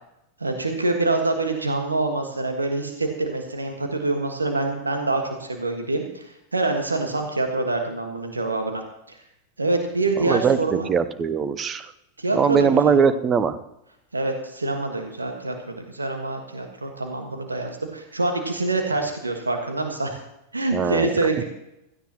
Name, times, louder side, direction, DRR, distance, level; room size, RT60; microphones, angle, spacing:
voice 1, 0.4-6.2 6.5-8.8 9.1-9.2 9.6-10.9 12.2-12.9 14.1-20.2 20.5-21.4, right 2 dB, 80° right, 4 dB, 1.5 m, -25 dB
voice 2, 10.2-11.9 12.3-13.6 20.7-21.2, right 6 dB, 25° right, 14 dB, 0.8 m, -21 dB
16.0 x 14.5 x 3.0 m, 0.85 s
figure-of-eight pair, 90°, 0 cm